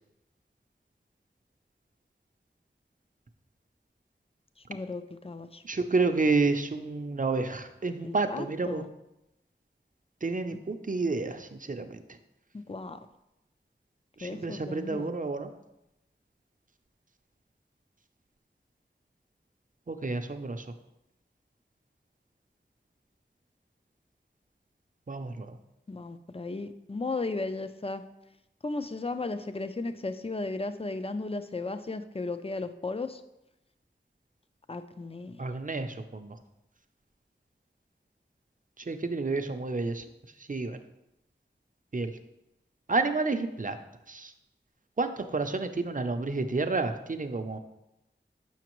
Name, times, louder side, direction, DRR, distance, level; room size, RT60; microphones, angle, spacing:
voice 1, 4.7-5.6 8.0-8.9 12.5-13.0 14.2-15.1 25.9-28.0 28.6-33.2 34.7-35.4, left 3 dB, 30° left, 10 dB, 0.4 m, -35 dB
voice 2, 5.6-8.8 10.2-11.9 14.2-15.5 19.9-20.6 25.1-25.6 35.4-36.4 38.9-40.0 40.5-40.8 41.9-42.1 42.9-43.8 44.1-44.3 45.0-47.6, right 3 dB, 45° right, 7 dB, 0.5 m, -30 dB
7.2 x 5.8 x 3.0 m, 0.89 s
wide cardioid pair, 40°, 19 cm